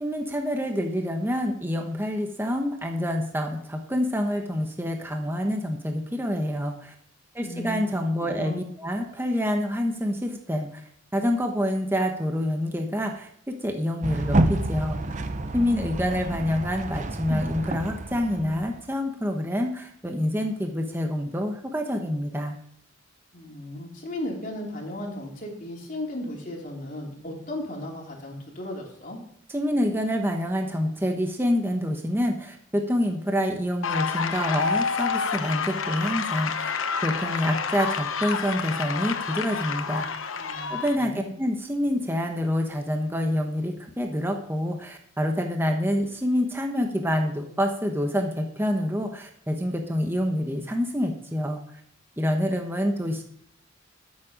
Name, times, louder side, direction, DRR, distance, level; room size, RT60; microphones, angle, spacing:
voice 1, 0.0-6.9 7.3-10.8 11.1-15.0 15.5-22.6 29.5-36.7 37.0-40.1 40.7-51.6 52.2-53.2, equal, 10° right, 3 dB, 1.1 m, -27 dB
voice 2, 7.4-8.6 23.3-29.2 40.4-41.3, left 1 dB, 40° left, -1 dB, 3.2 m, -36 dB
sound 1, 14.0-18.9, right 2 dB, 35° right, 0.7 m, -28 dB
sound 2, 33.8-41.0, left 5 dB, 90° left, 1.0 m, -29 dB
13.0 x 7.4 x 5.1 m, 0.66 s
head